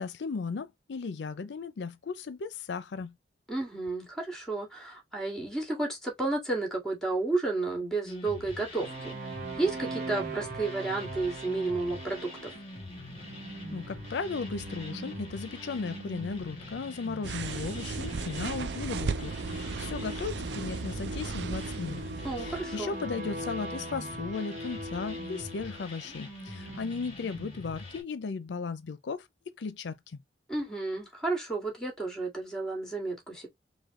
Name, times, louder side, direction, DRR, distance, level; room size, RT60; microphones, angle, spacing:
voice 1, 0.0-3.2 13.7-22.0 22.4-29.3 29.6-30.0, left 4 dB, 85° left, 0.5 m, -36 dB
voice 2, 3.5-12.5 22.2-23.0 30.5-33.5, right 3 dB, 5° left, 1.9 m, -32 dB
sound 1, 8.1-28.0, left 2 dB, 35° left, 2.0 m, -44 dB
sound 2, 8.8-26.8, right 2 dB, 55° right, 0.9 m, -42 dB
sound 3, 17.2-23.0, right 4 dB, 75° right, 0.5 m, -36 dB
4.9 x 2.2 x 3.6 m
head